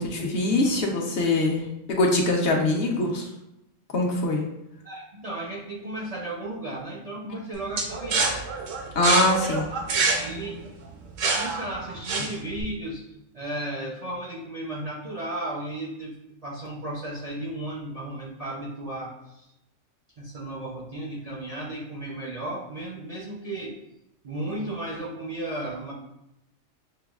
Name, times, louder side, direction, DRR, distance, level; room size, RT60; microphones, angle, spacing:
voice 1, 0.0-3.2 3.9-4.4 8.9-9.7, left 2 dB, 60° left, -1 dB, 0.8 m, -23 dB
voice 2, 4.8-8.4 10.1-10.6 11.2-16.2 16.4-19.5 20.2-23.8 24.2-25.9, right 1 dB, 50° right, -3 dB, 0.4 m, -34 dB
sound 1, 7.8-12.6, right 4 dB, 90° right, 1.0 m, -26 dB
6.7 x 2.2 x 2.3 m, 0.86 s
omnidirectional pair, 1.3 m